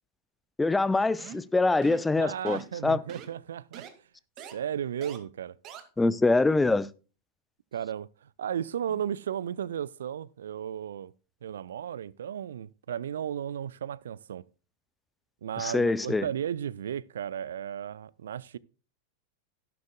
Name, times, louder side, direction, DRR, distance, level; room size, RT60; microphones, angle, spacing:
voice 1, 0.6-3.0 6.0-6.9 15.6-16.3, left 3 dB, 10° left, 0.5 m, -24 dB
sound 1, 1.2-1.5 1.8-2.1 2.4-2.8 3.1-3.3 3.7-3.9 4.4-4.5 5.0-5.2 5.6-5.8, right 10 dB, 35° right, 1.9 m, -44 dB
voice 2, 2.2-3.9 4.5-5.6 7.7-11.1 11.4-14.4 15.4-18.6, right 9 dB, 65° right, 0.4 m, -34 dB
13.0 x 11.5 x 2.2 m
figure-of-eight pair, 90°, 0 cm